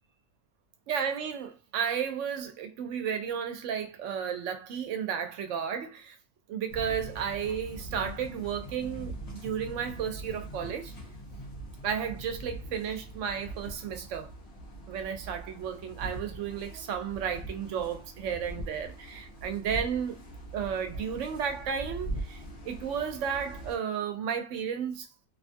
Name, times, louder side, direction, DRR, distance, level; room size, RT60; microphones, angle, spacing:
voice 1, 0.9-6.2 6.5-9.1 9.4-10.9 11.8-14.3 14.9-20.2 20.5-25.1, right 7 dB, 75° right, 0.9 m, -33 dB
sound 1, 6.7-23.8, right 1 dB, 60° left, 1.1 m, -42 dB
2.8 x 2.3 x 2.5 m
omnidirectional pair, 1.3 m